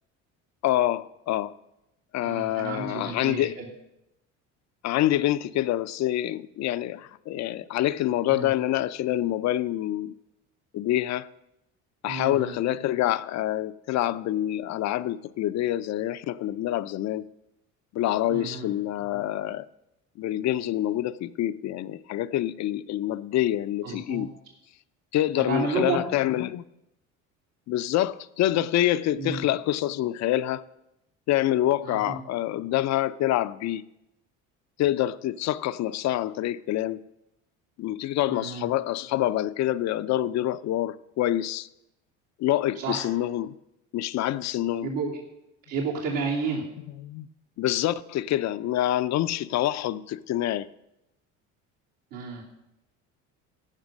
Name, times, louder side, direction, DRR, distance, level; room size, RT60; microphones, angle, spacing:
voice 1, 0.6-1.5 2.1-3.6 4.8-10.1 10.7-11.3 12.0-17.3 17.9-19.7 20.2-24.3 25.1-26.6 27.7-30.6 31.3-33.8 34.8-37.0 37.8-41.7 42.4-43.5 43.9-44.9 47.0-47.3 47.6-50.7, left 13 dB, 55° left, 0.6 m, -26 dB
voice 2, 2.2-3.7 8.3-8.5 12.1-12.5 18.3-18.7 23.8-24.2 25.4-26.0 29.1-29.4 31.8-32.2 38.3-38.7 42.7-43.0 44.8-45.2 45.7-46.6 52.1-52.4, right 4 dB, 75° right, 2.9 m, -31 dB
16.5 x 6.0 x 5.3 m
supercardioid pair, 85°, 33 cm